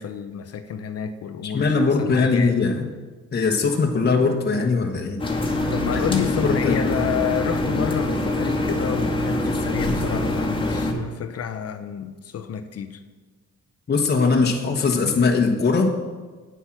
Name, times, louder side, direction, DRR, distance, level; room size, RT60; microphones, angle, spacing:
voice 1, 0.0-2.6 5.5-13.0, left 8 dB, 55° left, 0.7 m, -30 dB
voice 2, 1.4-2.8 3.3-5.2 6.4-6.8 13.9-15.9, left 4 dB, 35° left, 1.3 m, -20 dB
sound 1, 5.2-10.9, left 1 dB, 15° left, 2.0 m, -24 dB
9.4 x 8.1 x 6.0 m
cardioid pair, 90°, 30 cm